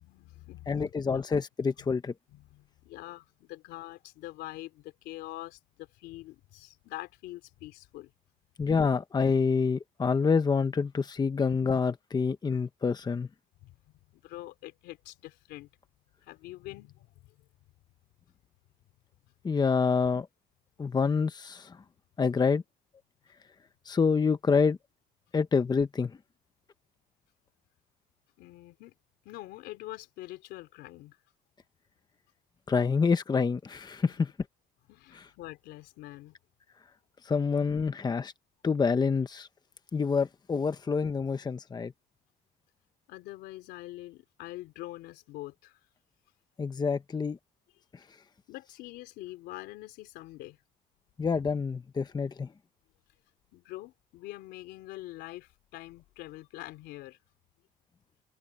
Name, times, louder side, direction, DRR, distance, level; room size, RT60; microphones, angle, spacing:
voice 1, 0.0-1.2 1.8-1.9 2.3-8.1 13.6-15.7 16.2-17.4 19.2-19.3 28.4-28.9 29.2-31.2 34.0-34.2 34.9-36.3 43.1-45.8 48.5-50.6 53.5-57.2, left 17 dB, 90° left, 3.2 m, -45 dB
voice 2, 0.7-2.1 8.6-13.3 19.4-20.3 20.8-21.8 22.2-22.6 23.9-24.8 25.3-26.1 32.7-34.3 35.1-35.2 37.3-38.3 38.6-39.5 39.9-41.9 46.6-47.4 51.2-52.5, left 5 dB, 25° left, 1.0 m, -27 dB
cardioid pair, 110°, 17 cm